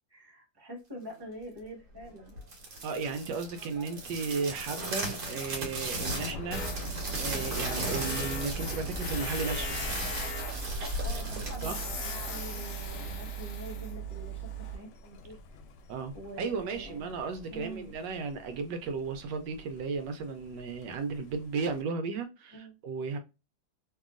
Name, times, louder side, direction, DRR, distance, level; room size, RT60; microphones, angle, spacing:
voice 1, 0.1-2.3 11.0-15.4 16.1-17.0 17.5-18.0 22.5-22.8, right 1 dB, 15° right, 1.1 m, -45 dB
sound 1, 2.4-12.7, right 1 dB, 60° right, 1.4 m, -37 dB
voice 2, 2.8-6.6 7.1-9.8 11.6-11.8 15.9-23.2, right 4 dB, 85° right, 1.2 m, -35 dB
Thunder, 4.0-21.8, left 4 dB, 75° left, 1.2 m, -47 dB
Tools, 6.5-14.8, right 2 dB, 60° left, 0.7 m, -37 dB
2.9 x 2.7 x 2.4 m
omnidirectional pair, 1.9 m